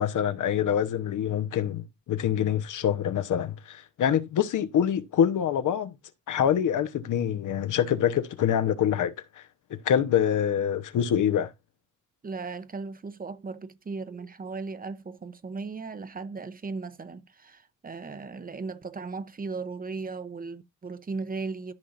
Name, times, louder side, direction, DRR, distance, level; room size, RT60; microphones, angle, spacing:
voice 1, 0.0-5.9 6.3-9.4 9.7-11.5, left 9 dB, 75° left, 1.0 m, -25 dB
voice 2, 12.2-21.7, right 4 dB, 30° right, 0.7 m, -37 dB
13.5 x 5.7 x 2.6 m
cardioid pair, 120°, 31 cm